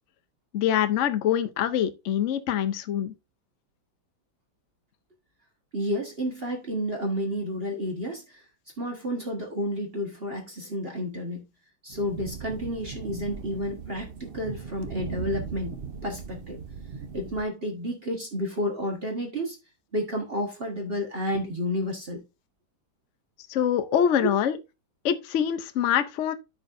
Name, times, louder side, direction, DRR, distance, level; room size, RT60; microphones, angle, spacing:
voice 1, 0.5-3.1 23.5-24.6 25.0-26.3, left 9 dB, 65° left, 0.7 m, -24 dB
voice 2, 5.7-8.4 8.8-11.4 11.8-15.8 16.0-16.6 17.1-19.6 19.9-22.2 23.9-24.0, left 1 dB, 35° right, 1.4 m, -31 dB
sound 1, 11.9-17.4, right 6 dB, 55° right, 0.6 m, -38 dB
13.5 x 4.7 x 2.5 m
omnidirectional pair, 2.1 m